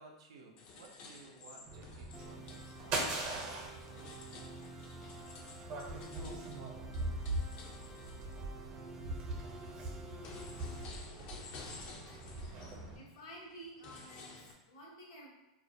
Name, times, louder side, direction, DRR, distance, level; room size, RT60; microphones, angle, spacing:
voice 1, 0.0-4.2, right 3 dB, 80° right, 1 dB, 0.5 m, -58 dB
sound 1, 0.6-8.4 8.9-14.5, left 4 dB, 45° left, 0.5 m, -53 dB
sound 2, 1.7-13.0, right 2 dB, 45° right, 0.8 m, -42 dB
sound 3, 2.1-10.8, right 3 dB, 15° right, 0.3 m, -51 dB
voice 2, 12.9-15.3, right 1 dB, 65° left, -2 dB, 0.9 m, -51 dB
2.4 x 2.1 x 2.6 m, 0.99 s
hypercardioid pair, 110°, 3 cm